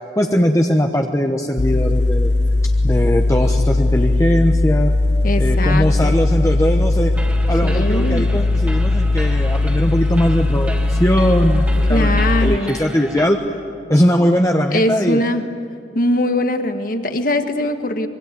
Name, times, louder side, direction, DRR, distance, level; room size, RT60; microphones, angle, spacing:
voice 1, 0.2-2.3 2.6-4.9 5.4-7.1 7.5-13.4 13.9-15.2, equal, 15° left, 2 dB, 1.1 m, -19 dB
sound 1, 1.6-12.6, left 2 dB, 85° left, 0.8 m, -18 dB
voice 2, 5.2-6.2 7.6-8.3 11.9-12.7 14.7-15.4 15.9-18.1, left 1 dB, 50° left, 7 dB, 1.6 m, -21 dB
sound 2, 7.1-13.3, right 1 dB, 10° right, 2.2 m, -35 dB
25.0 x 23.5 x 9.4 m, 2.3 s
head